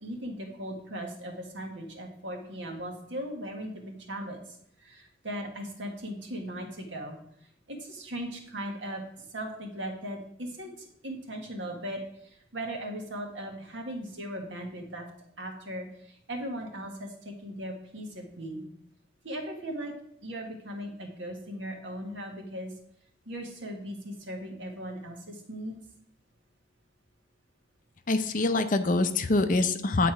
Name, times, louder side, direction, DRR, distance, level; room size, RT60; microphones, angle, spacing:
voice 1, 0.0-7.2 7.7-15.1 15.4-18.6 19.2-19.9 20.2-22.7 23.2-25.8, right 1 dB, 85° right, 2 dB, 1.6 m, -38 dB
voice 2, 28.1-30.1, left 2 dB, 45° left, 9 dB, 0.6 m, -25 dB
9.1 x 4.2 x 4.9 m, 0.69 s
head